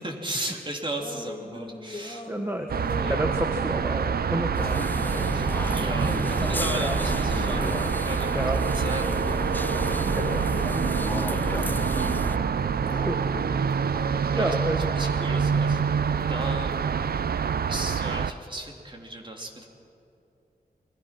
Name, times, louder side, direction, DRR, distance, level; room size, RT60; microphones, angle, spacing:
voice 1, 0.0-2.2 3.0-3.2 5.3-9.5 11.1-12.3 14.3-14.5 14.9-15.9 16.3-16.8 17.6-19.7, right 1 dB, 30° right, 1 dB, 3.3 m, -36 dB
sound 1, 1.0-3.3 4.9-6.6 8.8-11.0 12.8-14.4, left 2 dB, 30° left, 2.1 m, -41 dB
voice 2, 2.3-5.3 6.8-7.0 8.3-8.6 10.1-10.4 13.0-13.6 14.3-14.9, right 1 dB, 15° right, 4 dB, 1.2 m, -31 dB
sound 2, 2.7-18.3, right 6 dB, 80° right, 0.6 m, -26 dB
sound 3, 4.5-12.4, left 1 dB, 10° left, 0.5 m, -31 dB
29.0 x 21.5 x 6.1 m, 2.8 s
wide cardioid pair, 100°, 16 cm